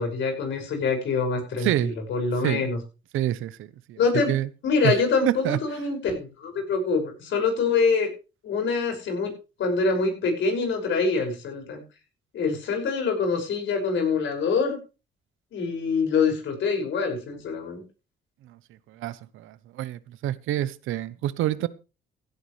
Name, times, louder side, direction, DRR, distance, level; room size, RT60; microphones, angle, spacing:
voice 1, 0.0-2.8 4.0-4.3 4.6-8.1 8.4-9.3 9.6-11.8 12.3-14.8 15.5-17.8, left 4 dB, 70° left, 6.1 m, -25 dB
voice 2, 1.6-1.9 2.4-2.7 3.1-4.0 4.3-4.5 4.8-4.9 5.3-5.6 18.9-21.7, right 13 dB, 85° right, 0.9 m, -27 dB
16.0 x 11.5 x 3.3 m
cardioid pair, 90°, 20 cm